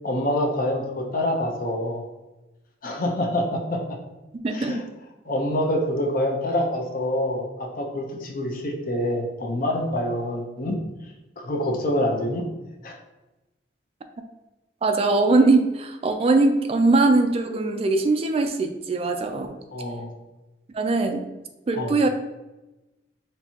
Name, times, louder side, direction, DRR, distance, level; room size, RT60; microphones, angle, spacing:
voice 1, 0.0-2.0 2.8-3.8 4.5-4.8 5.3-10.8 11.4-12.4 12.8-12.9 19.7-20.1 21.7-22.0, left 1 dB, 50° left, 2 dB, 0.7 m, -26 dB
voice 2, 4.4-4.8 14.8-19.6 20.7-21.2 21.7-22.1, right 3 dB, 35° right, 6 dB, 0.3 m, -21 dB
4.4 x 3.3 x 2.8 m, 1.0 s
head